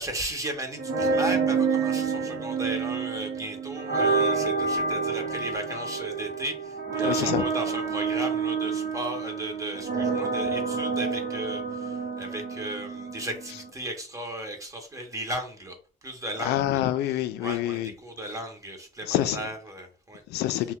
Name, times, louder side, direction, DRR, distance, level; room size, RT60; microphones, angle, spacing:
voice 1, 0.0-15.8 16.0-16.8 17.4-20.2, right 1 dB, 20° right, 0.8 m, -35 dB
sound 1, 0.8-13.7, right 5 dB, 50° right, 0.8 m, -28 dB
voice 2, 7.0-7.5 16.4-17.9 19.0-19.5 20.3-20.7, left 13 dB, 80° left, 0.4 m, -27 dB
2.7 x 2.2 x 3.5 m
cardioid pair, 110°, 17 cm